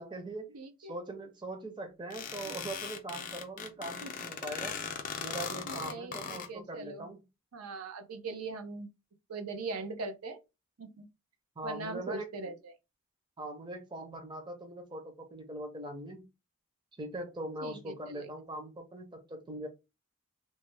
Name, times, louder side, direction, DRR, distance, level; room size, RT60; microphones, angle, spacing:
voice 1, 0.0-4.7 5.2-7.2 11.6-12.5 13.4-16.2 17.0-19.7, right 1 dB, 20° right, 0.6 m, -41 dB
voice 2, 0.5-1.0 2.5-2.6 4.0-4.1 5.7-7.1 7.5-8.9 9.3-10.4 10.8-11.1 11.6-12.5 17.6-18.3, right 3 dB, 80° right, 0.5 m, -40 dB
sound 1, 2.1-6.5, left 6 dB, 35° left, 0.4 m, -39 dB
3.1 x 2.1 x 3.2 m
head